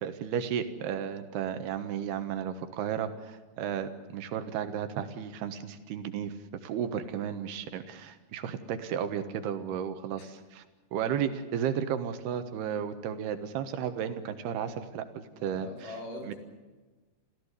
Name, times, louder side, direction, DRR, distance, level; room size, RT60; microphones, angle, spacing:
voice 1, 0.0-6.3 6.6-10.6 10.9-15.9 16.2-16.3, right 8 dB, 75° right, 9 dB, 3.3 m, -33 dB
voice 2, 15.4-16.4, left 1 dB, 55° left, 1 dB, 6.2 m, -42 dB
27.5 x 15.5 x 8.3 m, 1.2 s
omnidirectional pair, 4.7 m